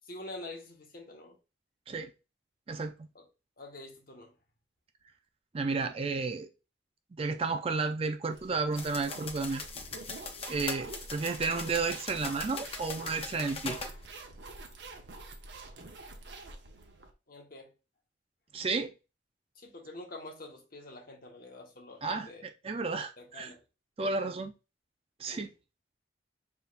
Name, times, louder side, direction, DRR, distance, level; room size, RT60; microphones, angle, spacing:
voice 1, 0.1-1.4 3.1-3.2 3.6-4.3 17.3-17.7 19.5-22.4 23.2-23.6 25.3-25.5, left 2 dB, 50° left, 1.3 m, -46 dB
voice 2, 2.7-3.1 5.5-6.5 7.2-9.6 10.5-13.8 18.5-18.9 22.0-22.3 22.6-23.5 24.0-24.5 25.2-25.5, right 4 dB, 30° right, 0.4 m, -32 dB
sound 1, 8.3-17.1, right 2 dB, 65° right, 0.8 m, -47 dB
sound 2, 8.8-13.9, left 4 dB, 30° left, 0.6 m, -41 dB
5.7 x 3.5 x 2.5 m
head